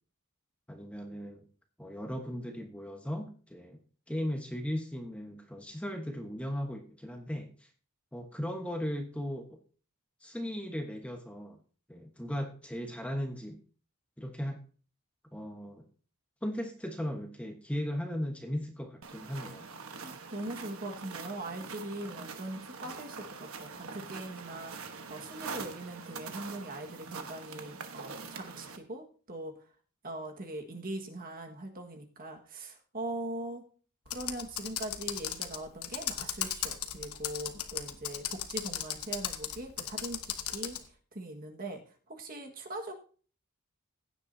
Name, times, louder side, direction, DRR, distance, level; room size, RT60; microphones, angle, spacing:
voice 1, 0.7-1.4 1.8-3.8 4.1-7.7 8.1-9.6 10.2-11.6 11.9-13.6 14.2-14.6 15.3-15.8 16.4-19.7, equal, 5° left, 3 dB, 1.2 m, -37 dB
sound 1, 19.0-28.8, right 5 dB, 65° right, 1.2 m, -44 dB
voice 2, 20.0-29.5 30.0-33.6 34.1-40.8 41.1-41.8 42.1-42.9, right 1 dB, 40° right, 3 dB, 1.7 m, -41 dB
Computer keyboard, 34.1-40.8, left 10 dB, 75° left, 1.2 m, -36 dB
16.0 x 10.0 x 2.7 m, 0.41 s
head